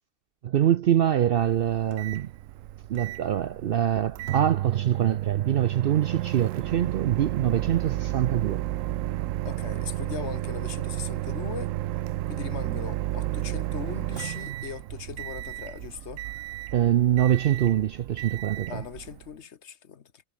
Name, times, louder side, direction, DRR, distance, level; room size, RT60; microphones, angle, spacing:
voice 1, 0.4-2.3 2.9-8.6 16.7-18.8, right 10 dB, 60° right, 0.6 m, -24 dB
Microwave oven, 1.4-19.3, right 14 dB, 80° right, 0.9 m, -32 dB
voice 2, 9.4-11.8 12.3-16.3 18.7-20.2, left 7 dB, 60° left, 1.3 m, -39 dB
omnidirectional pair, 1.4 m